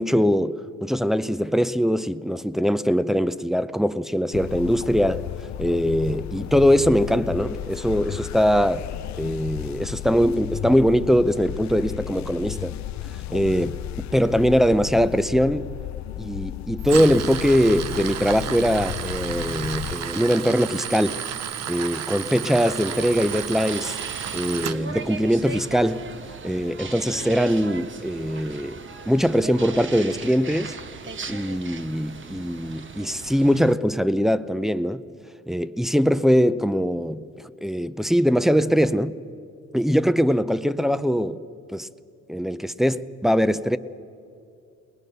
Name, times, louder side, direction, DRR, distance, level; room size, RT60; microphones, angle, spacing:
voice 1, 0.0-5.2 5.6-8.9 9.2-12.7 13.3-15.7 16.2-21.2 21.7-24.0 24.3-26.1 26.4-28.8 29.1-30.7 31.3-35.0 35.5-39.1 39.7-41.4 41.7-41.9 42.3-43.8, equal, ahead, 0.6 m, -22 dB
sound 1, 4.3-20.0, left 13 dB, 65° left, 0.6 m, -34 dB
Tools, 16.8-24.8, right 9 dB, 60° right, 0.8 m, -32 dB
sound 2, 22.9-33.7, right 4 dB, 40° right, 1.2 m, -38 dB
21.5 x 19.5 x 6.7 m
cardioid pair, 90°, 30 cm